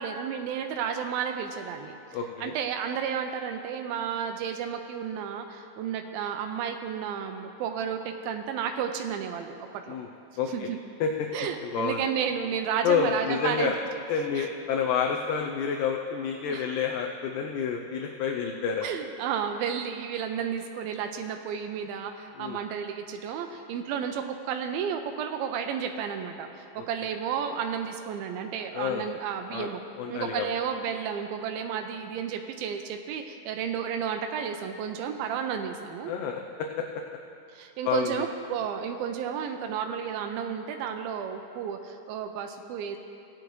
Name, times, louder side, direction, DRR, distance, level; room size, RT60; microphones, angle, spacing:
voice 1, 0.0-10.0 10.5-10.8 11.3-13.7 14.4-14.5 16.5-16.7 18.8-29.8 30.1-36.1 37.5-43.0, right 7 dB, 85° right, 5 dB, 2.4 m, -32 dB
voice 2, 2.1-2.6 9.9-10.1 10.4-10.7 11.0-11.3 11.6-12.0 12.8-13.8 14.1-18.9 22.4-22.6 26.8-26.9 28.7-29.1 29.5-29.7 30.0-30.5 36.1-36.8 37.8-38.1, left 6 dB, 80° left, 2 dB, 2.0 m, -29 dB
17.5 x 10.0 x 3.1 m, 2.7 s
omnidirectional pair, 4.2 m